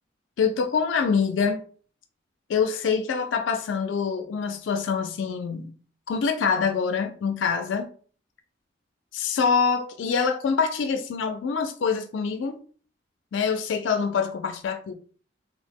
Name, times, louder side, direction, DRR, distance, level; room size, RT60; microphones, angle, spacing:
voice 1, 0.4-1.6 2.5-5.7 6.1-7.9 9.1-12.6 13.3-14.9, left 5 dB, 80° left, 0.4 m, -25 dB
2.9 x 2.0 x 3.4 m
head